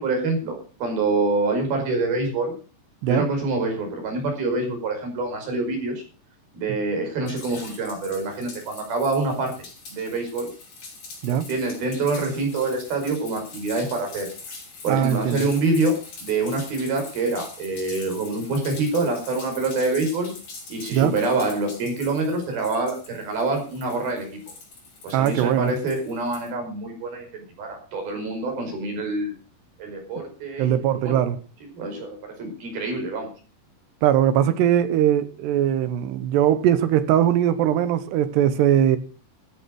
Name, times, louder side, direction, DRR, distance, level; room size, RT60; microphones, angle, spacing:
voice 1, 0.0-2.5 3.1-6.0 6.5-9.5 9.9-10.5 11.5-14.3 14.8-15.9 16.2-20.3 20.7-24.4 25.0-29.3 29.8-30.8 31.0-31.2 31.8-33.3, right 3 dB, 50° right, 6.7 m, -26 dB
sound 1, 7.3-26.5, left 3 dB, 45° left, 7.2 m, -43 dB
voice 2, 14.9-15.5 20.9-21.2 25.1-25.7 30.6-31.4 34.0-39.0, right 10 dB, 75° right, 2.9 m, -20 dB
14.0 x 9.6 x 6.4 m
omnidirectional pair, 5.5 m